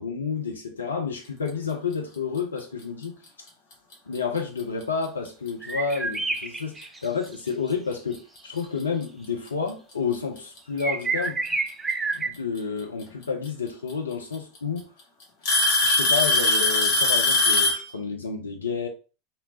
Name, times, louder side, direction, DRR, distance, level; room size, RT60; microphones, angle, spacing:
voice 1, 0.0-3.5 4.1-11.6 12.1-14.9 15.8-18.9, left 5 dB, 75° left, 0.4 m, -30 dB
Alarm / Tick-tock, 3.9-4.2 5.0-5.1 5.9-6.0 7.7-7.8 9.0-9.1 10.4-10.8 12.6-12.7 13.9-14.0 14.3-14.8 15.4-17.9, left 2 dB, 50° left, 1.1 m, -21 dB
sound 1, 5.6-7.3 8.6-8.7 10.8-12.3, right 3 dB, 15° right, 0.4 m, -28 dB
3.1 x 2.9 x 2.7 m
figure-of-eight pair, 80°, 0 cm